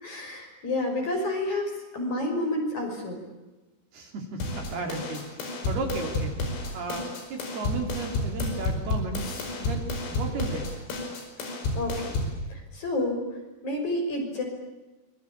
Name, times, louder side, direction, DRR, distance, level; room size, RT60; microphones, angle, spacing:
voice 1, 0.0-3.2 11.4-11.5 11.8-12.2 12.5-13.2 13.6-14.4, left 1 dB, 35° left, 2 dB, 7.0 m, -29 dB
voice 2, 3.9-6.4 6.7-9.2 9.6-10.7, right 3 dB, 55° right, 3 dB, 4.6 m, -34 dB
sound 1, 4.4-12.4, left 2 dB, 85° left, 7.6 m, -31 dB
26.0 x 22.5 x 8.6 m, 1.1 s
omnidirectional pair, 5.7 m